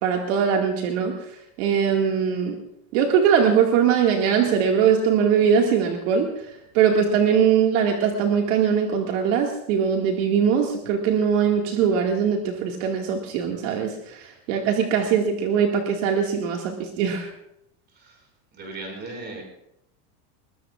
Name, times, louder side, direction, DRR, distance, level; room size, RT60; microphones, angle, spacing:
voice 1, 0.0-1.3 1.6-2.6 2.9-17.3, right 7 dB, 60° right, 1 dB, 2.1 m, -21 dB
voice 2, 17.9-18.3 18.5-19.4, right 2 dB, 25° right, 2 dB, 5.7 m, -37 dB
22.0 x 21.5 x 2.4 m, 0.80 s
cardioid pair, 180°, 43 cm